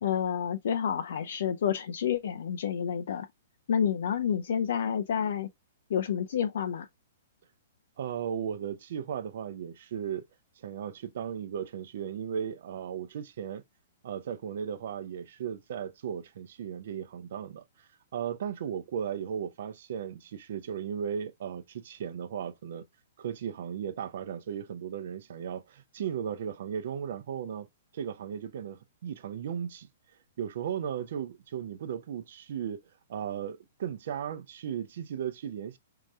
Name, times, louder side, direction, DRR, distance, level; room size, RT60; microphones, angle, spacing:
voice 1, 0.0-3.3 3.7-5.5 5.9-6.9, left 8 dB, 55° left, 0.5 m, -29 dB
voice 2, 8.0-10.2 10.6-13.6 14.0-22.8 23.2-27.7 27.9-29.9 30.4-32.8 33.1-35.8, right 8 dB, 55° right, 0.6 m, -36 dB
5.2 x 2.9 x 2.4 m
figure-of-eight pair, 110°, 0 cm